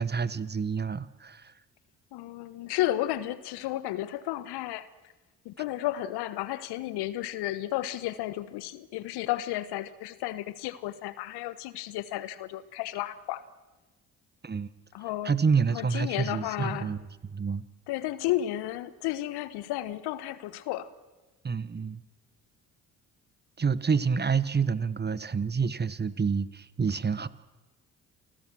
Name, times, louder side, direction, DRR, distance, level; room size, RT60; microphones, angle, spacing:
voice 1, 0.0-1.5 14.4-14.7 15.2-17.0 17.3-17.6 21.4-22.0 23.6-27.3, right 5 dB, 25° right, 1.2 m, -28 dB
voice 2, 2.1-4.9 5.4-13.4 14.9-15.3 15.7-16.9 17.9-20.9, left 14 dB, 65° left, 1.3 m, -33 dB
28.5 x 20.0 x 6.3 m
hypercardioid pair, 50°, 42 cm